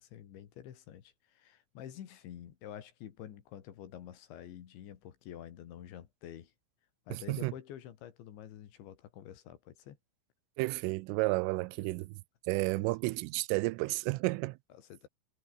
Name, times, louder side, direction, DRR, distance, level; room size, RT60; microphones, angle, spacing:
voice 1, 0.0-6.5 7.1-10.0 11.5-12.0 12.5-12.9 14.8-15.1, left 10 dB, 70° left, 4.5 m, -49 dB
voice 2, 7.1-7.5 10.6-12.2 12.5-14.6, right 22 dB, 90° right, 3.2 m, -32 dB
omnidirectional pair, 5.7 m